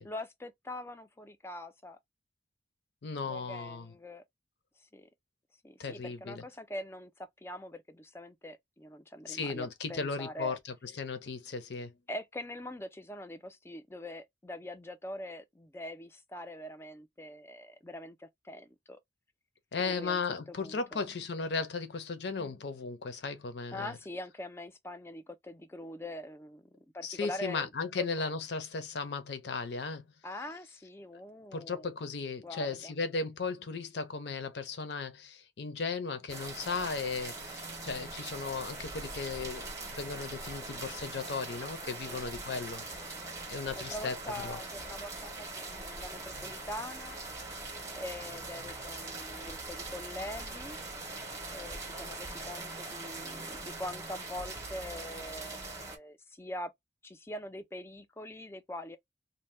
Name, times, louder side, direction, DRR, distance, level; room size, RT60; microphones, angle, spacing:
voice 1, 0.0-2.0 3.2-4.2 4.8-5.1 5.6-10.6 12.1-19.0 19.8-20.2 20.5-21.0 23.7-27.7 28.0-28.3 30.2-31.9 32.4-32.9 41.9-42.2 43.8-47.2 47.9-50.8 51.5-56.7 57.0-59.0, left 1 dB, 15° left, 0.4 m, -43 dB
voice 2, 3.0-3.9 5.8-6.4 9.3-10.6 11.0-11.9 19.7-23.9 27.0-30.1 31.5-42.8 43.5-44.2 44.4-44.6, left 4 dB, 70° left, 0.6 m, -36 dB
sound 1, 36.3-56.0, right 2 dB, 15° right, 0.7 m, -42 dB
2.7 x 2.1 x 3.2 m
head